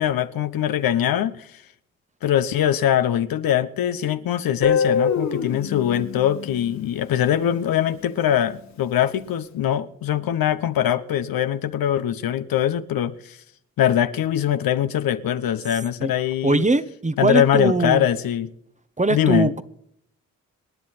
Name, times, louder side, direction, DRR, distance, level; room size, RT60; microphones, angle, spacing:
voice 1, 0.0-1.6 2.2-13.4 13.8-16.7 17.2-18.5 19.1-19.5, left 10 dB, 65° left, 1.0 m, -22 dB
Guitar, 4.6-7.6, left 6 dB, 85° left, 2.7 m, -25 dB
voice 2, 16.4-18.1 19.0-19.6, right 2 dB, 20° right, 1.1 m, -21 dB
26.5 x 10.5 x 4.2 m
hypercardioid pair, 40°, 37 cm